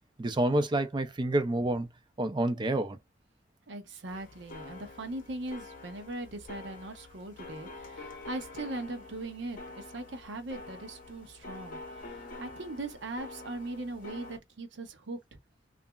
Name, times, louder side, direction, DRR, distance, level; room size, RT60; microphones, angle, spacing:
voice 1, 0.2-1.9 2.2-3.0, right 1 dB, 25° right, 0.4 m, -28 dB
voice 2, 3.7-11.8 12.4-15.2, right 2 dB, 65° right, 0.7 m, -40 dB
sound 1, 4.1-14.4, left 2 dB, 45° left, 0.8 m, -46 dB
2.8 x 2.5 x 2.2 m
head